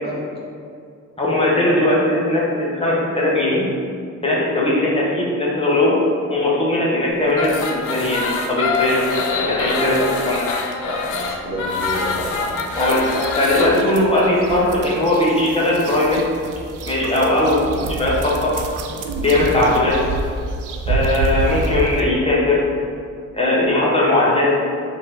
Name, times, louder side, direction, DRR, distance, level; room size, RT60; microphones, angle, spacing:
voice 1, 1.2-3.6 4.2-6.0 6.3-8.2 8.5-9.0 9.4-10.4 12.8-13.0 13.4-16.2 16.9-17.6 18.0-18.5 19.2-20.0 20.9-22.6 23.3-24.5, left 1 dB, 20° left, -6 dB, 0.7 m, -18 dB
sound 1, 7.3-13.7, left 4 dB, 75° left, 0.6 m, -24 dB
voice 2, 8.7-10.1 10.8-12.7, equal, 35° right, -4 dB, 0.7 m, -31 dB
sound 2, 11.8-22.0, right 3 dB, 85° right, 0.5 m, -28 dB
5.4 x 2.6 x 3.4 m, 2.4 s
wide cardioid pair, 170°, 30 cm